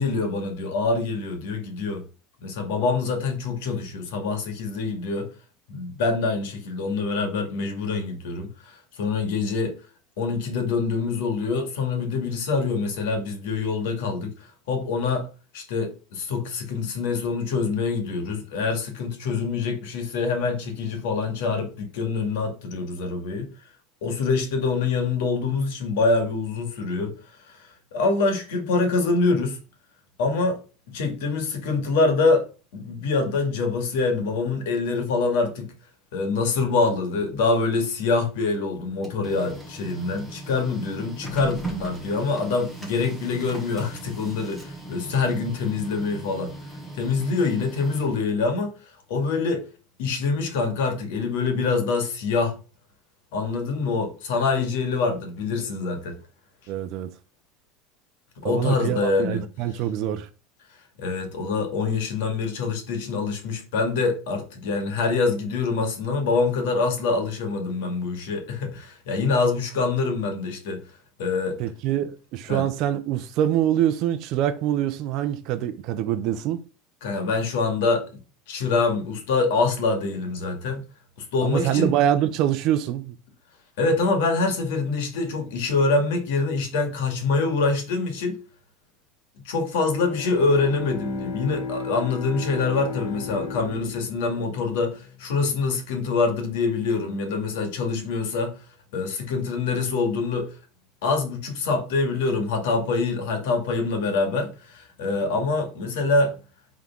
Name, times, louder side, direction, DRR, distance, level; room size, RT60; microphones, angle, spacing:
voice 1, 0.0-2.0 2.4-5.3 5.7-9.7 10.2-14.4 14.7-15.3 15.5-23.5 24.0-27.1 27.4-27.6 27.9-29.6 30.2-30.6 30.9-32.5 32.7-35.7 36.1-46.5 46.9-48.7 49.1-49.6 50.0-52.6 53.3-56.2 58.4-59.4 61.0-70.8 71.2-71.6 72.5-72.7 77.0-78.1 78.5-80.8 81.3-81.9 83.8-88.4 89.4-98.5 98.9-100.5 101.0-106.4, left 4 dB, 75° left, 2.0 m, -25 dB
Printer, 38.7-48.5, right 1 dB, 5° left, 1.1 m, -39 dB
voice 2, 56.7-57.1 58.4-60.3 71.6-76.6 81.4-83.1, right 11 dB, 40° right, 0.6 m, -25 dB
Bowed string instrument, 89.9-95.5, left 5 dB, 60° left, 1.2 m, -35 dB
5.7 x 3.7 x 5.9 m
cardioid pair, 180°, 0 cm